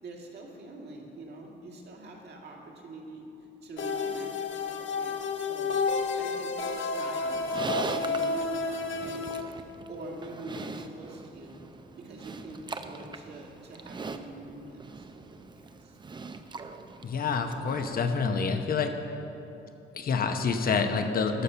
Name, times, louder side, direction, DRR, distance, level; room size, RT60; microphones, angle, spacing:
voice 1, 0.0-3.2 3.6-5.7 6.2-9.3 9.9-11.6 11.9-16.0, right 2 dB, 55° right, -1 dB, 1.9 m, -45 dB
sound 1, 3.8-9.4, left 4 dB, 75° left, 0.8 m, -31 dB
Livestock farm animals working animals, 7.2-18.5, right 4 dB, 25° right, 0.5 m, -41 dB
voice 2, 17.0-18.9 19.9-21.4, left 5 dB, 50° left, 6 dB, 0.9 m, -27 dB
14.0 x 5.5 x 5.7 m, 2.9 s
cardioid pair, 90°, 20 cm